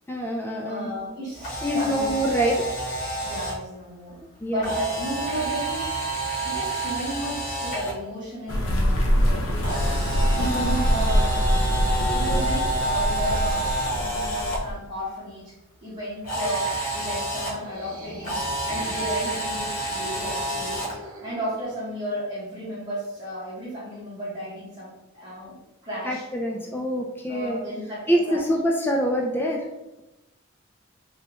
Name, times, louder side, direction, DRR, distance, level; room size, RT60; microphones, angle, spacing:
voice 1, 0.1-1.0 1.6-2.5 4.4-4.8 10.4-10.8 26.0-27.6 28.1-29.7, equal, 10° left, -1 dB, 0.3 m, -25 dB
voice 2, 0.6-2.1 3.2-4.2 4.5-6.0 6.4-11.4 12.1-15.5 15.8-18.4 18.6-20.8 21.2-25.6 25.8-26.2 27.3-28.4, equal, 20° right, -11 dB, 1.0 m, -33 dB
Camera, 1.3-3.5 4.6-7.9 9.6-14.6 16.2-17.5 18.2-20.9, right 2 dB, 45° left, 1.0 m, -29 dB
sound 1, 8.5-14.7, equal, 80° left, 0.6 m, -24 dB
sound 2, 17.4-22.2, equal, 75° right, 0.7 m, -43 dB
3.3 x 2.2 x 2.9 m, 0.96 s
head